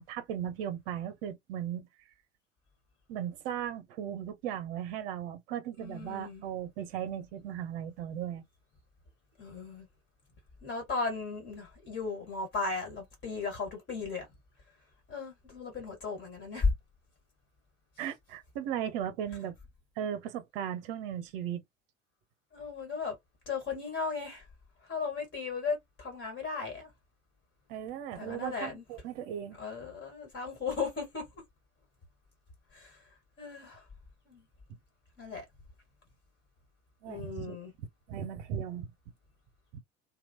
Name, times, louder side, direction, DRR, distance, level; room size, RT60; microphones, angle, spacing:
voice 1, 0.0-1.9 3.1-8.4 18.0-19.5 20.0-21.6 27.7-29.6 37.0-38.9, right 9 dB, 50° right, 0.7 m, -37 dB
voice 2, 5.8-6.4 9.4-9.9 10.6-14.3 15.1-16.7 22.5-23.1 23.4-24.5 24.9-26.9 28.1-28.8 29.6-31.3 32.7-33.0 33.4-33.8 34.3-34.4 35.2-35.4 37.1-37.7, left 4 dB, 30° left, 1.6 m, -36 dB
2.9 x 2.1 x 2.7 m
figure-of-eight pair, 75°, 36 cm